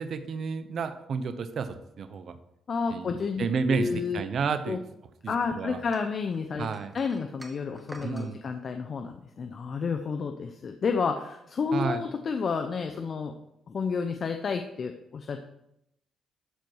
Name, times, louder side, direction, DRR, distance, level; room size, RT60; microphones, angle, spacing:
voice 1, 0.0-2.4 2.9-4.8 5.2-5.8 6.6-6.9 8.0-8.4 11.7-12.0, right 5 dB, 55° right, 9 dB, 0.9 m, -31 dB
voice 2, 2.7-4.2 4.7-4.8 5.3-6.7 6.9-13.3 13.7-15.4, left 5 dB, 50° left, 6 dB, 0.7 m, -30 dB
sound 1, 5.9-8.3, right 1 dB, 10° right, 1.6 m, -48 dB
12.5 x 4.6 x 4.8 m, 0.80 s
cardioid pair, 90°, 0 cm